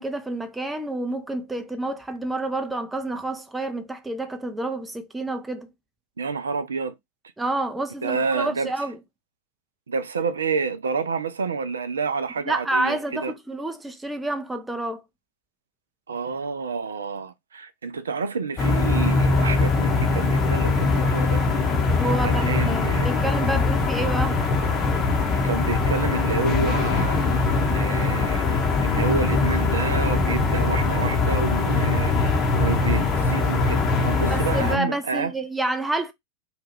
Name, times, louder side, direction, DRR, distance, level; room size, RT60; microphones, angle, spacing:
voice 1, 0.0-5.7 7.4-9.0 12.4-15.0 22.0-24.4 34.3-36.1, right 1 dB, 5° right, 0.4 m, -29 dB
voice 2, 6.2-7.0 8.0-8.7 9.9-13.3 16.1-21.4 22.2-23.1 25.2-35.3, right 5 dB, 70° right, 0.3 m, -29 dB
sound 1, 18.6-34.8, left 3 dB, 25° left, 0.8 m, -22 dB
2.8 x 2.3 x 3.0 m
figure-of-eight pair, 90°, 0 cm